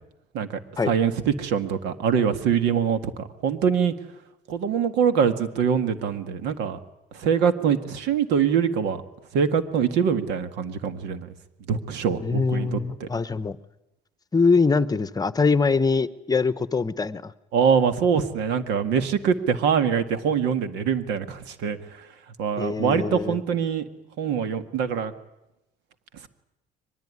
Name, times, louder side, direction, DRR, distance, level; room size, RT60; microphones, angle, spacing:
voice 1, 0.9-3.9 4.5-6.8 7.1-9.0 9.3-11.3 11.7-13.1 17.5-21.8 22.4-23.8 24.2-25.1, right 7 dB, 85° right, 10 dB, 1.9 m, -24 dB
voice 2, 12.2-13.6 14.3-17.3 22.6-23.4, left 4 dB, 20° left, 15 dB, 0.9 m, -23 dB
23.5 x 20.5 x 9.7 m, 0.91 s
cardioid pair, 105°, 17 cm